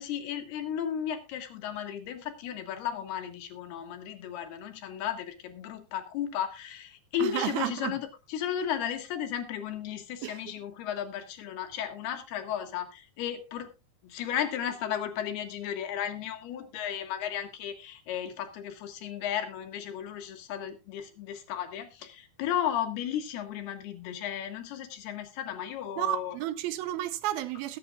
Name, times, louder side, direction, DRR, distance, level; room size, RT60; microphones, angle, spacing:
voice 1, 0.0-13.7 14.0-26.4, left 10 dB, 85° left, 3.6 m, -34 dB
voice 2, 7.2-8.0 10.2-10.4 26.0-27.8, right 14 dB, 80° right, 2.6 m, -32 dB
20.5 x 8.8 x 2.4 m
omnidirectional pair, 4.4 m